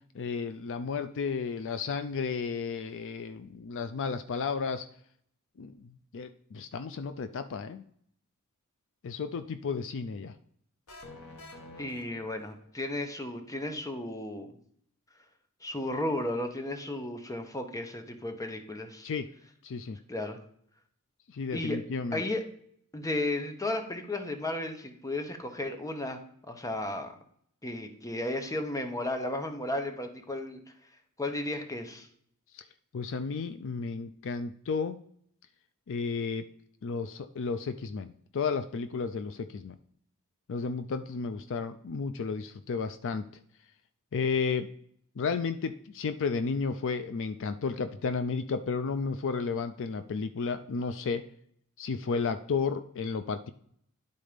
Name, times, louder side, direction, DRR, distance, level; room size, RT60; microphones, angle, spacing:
voice 1, 0.1-4.9 5.6-7.8 9.0-10.3 19.0-19.3 19.6-20.0 21.3-22.2 32.5-32.6 32.9-35.0 35.9-36.5 36.8-39.8 40.5-43.2 44.1-44.7 45.2-51.2 51.8-53.5, left 5 dB, 60° left, 11 dB, 0.4 m, -33 dB
sound 1, 10.9-12.9, left 2 dB, 80° left, 1.5 m, -48 dB
voice 2, 11.8-14.6 15.6-19.1 20.1-20.4 21.5-21.8 22.1-22.5 22.9-27.1 27.6-30.6 31.2-32.1, left 1 dB, 15° left, 6 dB, 0.9 m, -34 dB
10.5 x 4.1 x 5.0 m, 0.64 s
head